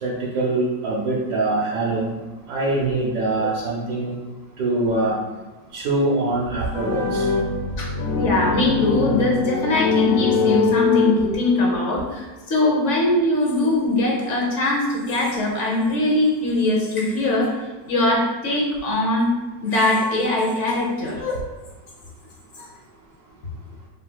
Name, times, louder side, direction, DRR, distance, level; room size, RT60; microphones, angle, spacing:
voice 1, 0.0-2.1 2.5-4.1 4.6-5.1 5.7-7.3, right 2 dB, 70° right, -6 dB, 1.5 m, -23 dB
sound 1, 6.7-11.7, left 4 dB, 90° left, 1.3 m, -23 dB
voice 2, 7.8-17.6 17.9-19.3 19.6-21.4 22.6-22.7, left 2 dB, 50° left, -1 dB, 1.1 m, -21 dB
7.3 x 2.7 x 2.3 m, 1.2 s
omnidirectional pair, 1.9 m